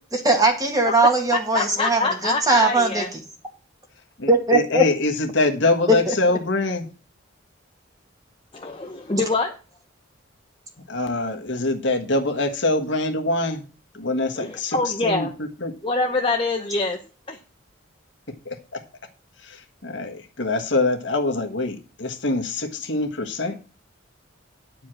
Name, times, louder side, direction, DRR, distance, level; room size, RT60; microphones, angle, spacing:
voice 1, 0.1-3.0 4.3-4.8 6.1-6.2, right 2 dB, 20° right, 1.9 m, -20 dB
voice 2, 1.3-3.1 8.5-9.5 14.4-15.3 15.8-17.0 17.3-17.4, left 3 dB, 25° left, 0.9 m, -25 dB
voice 3, 4.2-6.9 10.9-13.6 13.9-14.8 15.0-15.3 15.6-15.7 18.4-18.8 19.4-23.6, left 2 dB, 60° left, 1.4 m, -24 dB
10.5 x 4.9 x 7.6 m
head